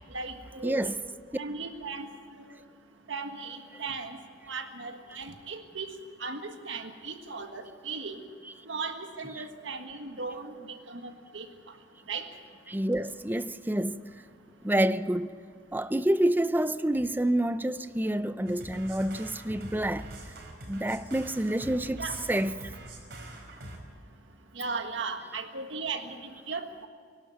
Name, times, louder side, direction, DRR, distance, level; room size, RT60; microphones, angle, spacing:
voice 1, 0.1-0.9 1.4-2.1 2.4-2.5 3.1-4.2 4.5-5.9 6.2-8.2 8.6-11.5 12.1-12.2 22.0-22.2 24.5-26.9, right 4 dB, 85° right, 1.6 m, -37 dB
voice 2, 0.6-1.0 8.4-8.5 9.2-9.4 12.7-14.0 14.6-15.3 15.7-20.1 20.7-22.6, right 1 dB, 10° right, 0.5 m, -28 dB
sound 1, 18.5-23.8, right 1 dB, 60° right, 5.2 m, -44 dB
24.0 x 12.0 x 9.5 m
head